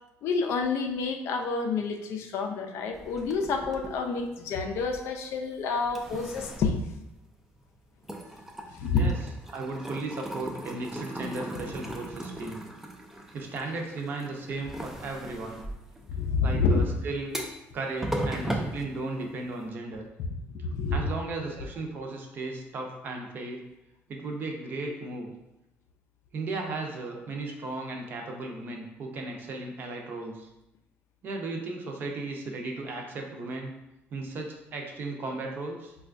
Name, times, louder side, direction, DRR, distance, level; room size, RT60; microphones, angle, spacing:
voice 1, 0.2-6.8 8.7-9.1 16.1-16.8 20.6-21.1, left 4 dB, 70° left, 4 dB, 0.4 m, -28 dB
sound 1, 2.9-5.4 5.8-7.7 8.0-19.6, right 1 dB, 5° right, 0.3 m, -38 dB
voice 2, 9.5-12.6 13.3-15.6 16.4-17.4 17.7-20.0 20.9-23.6 24.1-25.3 26.3-30.5 31.2-33.7 34.1-36.0, right 3 dB, 45° right, 2 dB, 0.6 m, -35 dB
4.2 x 2.3 x 2.4 m, 0.91 s
cardioid pair, 140°, 5 cm